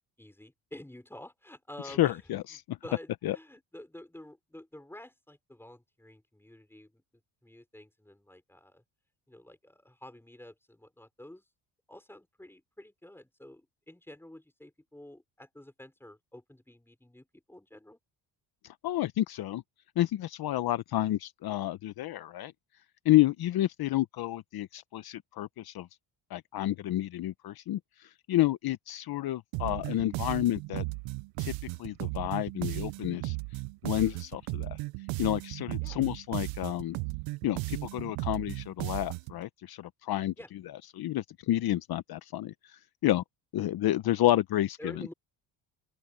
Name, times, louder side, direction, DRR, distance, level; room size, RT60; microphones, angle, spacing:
voice 1, 0.2-2.4 2.8-8.8 9.3-11.5 11.9-18.0 34.1-34.2 35.8-36.0 40.4-40.5 44.8-45.1, left 1 dB, 5° left, 5.7 m, -49 dB
voice 2, 1.8-2.8 3.2-3.4 18.6-19.6 20.0-22.5 23.0-25.9 26.3-30.9 31.4-31.5 31.8-34.8 35.2-37.0 37.4-40.3 40.9-43.2 43.5-45.1, left 14 dB, 55° left, 0.8 m, -30 dB
sound 1, 29.5-39.4, right 25 dB, 85° right, 0.6 m, -36 dB
open air
cardioid pair, 100°, 44 cm